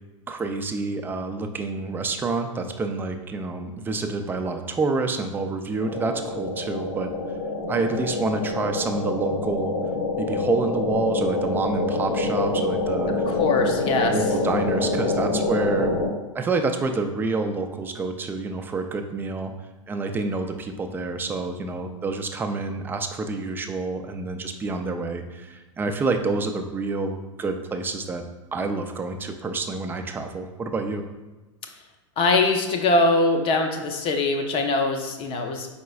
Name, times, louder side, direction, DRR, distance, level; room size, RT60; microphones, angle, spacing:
voice 1, 0.3-7.1 7.7-9.7 10.2-13.1 14.0-15.9 16.3-19.5 19.9-28.2 28.5-31.0, right 3 dB, 10° right, 5 dB, 0.4 m, -28 dB
sound 1, 5.8-16.1, left 2 dB, 60° left, 1.1 m, -26 dB
voice 2, 13.1-14.2 32.2-35.7, left 2 dB, 35° left, 4 dB, 0.6 m, -22 dB
4.6 x 4.3 x 2.3 m, 1.1 s
hypercardioid pair, 100°, 17 cm